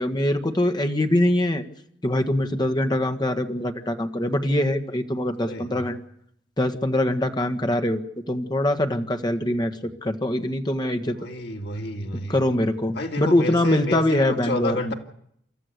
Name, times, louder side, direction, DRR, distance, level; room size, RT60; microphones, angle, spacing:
voice 1, 0.0-1.6 2.0-6.0 6.6-8.0 8.3-11.2 12.1-14.9, left 1 dB, 25° left, 7 dB, 1.6 m, -23 dB
voice 2, 5.4-5.9 11.1-12.4 12.9-14.9, left 2 dB, 65° left, 2 dB, 2.8 m, -30 dB
29.0 x 13.5 x 8.2 m, 0.71 s
head